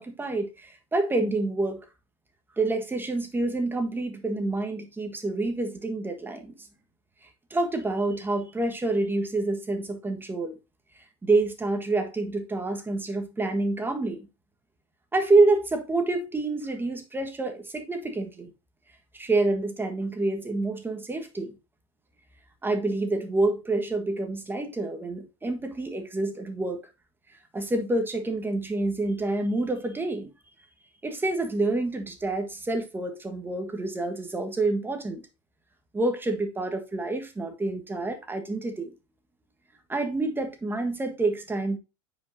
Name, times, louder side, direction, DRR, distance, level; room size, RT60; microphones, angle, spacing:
voice 1, 0.0-1.8 2.6-6.7 7.2-10.6 11.2-14.3 15.1-18.5 19.1-21.5 22.6-26.9 27.5-30.3 31.0-35.2 35.9-38.9 39.9-41.8, right 2 dB, 15° right, 1.6 m, -27 dB
9.1 x 5.3 x 2.8 m
supercardioid pair, 105°, 16 cm